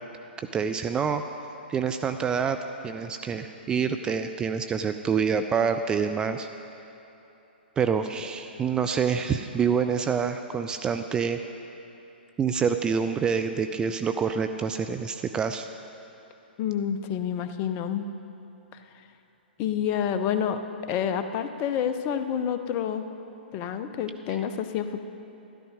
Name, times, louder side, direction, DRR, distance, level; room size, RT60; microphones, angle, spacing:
voice 1, 0.5-1.2 1.7-2.6 2.8-6.5 7.8-11.4 12.4-15.7, right 6 dB, 15° right, 7 dB, 0.3 m, -26 dB
voice 2, 16.6-18.1 19.6-20.6 20.9-23.1 23.5-25.0, left 8 dB, 30° left, 9 dB, 0.6 m, -28 dB
12.5 x 12.0 x 4.9 m, 3.0 s
figure-of-eight pair, 120°, 6 cm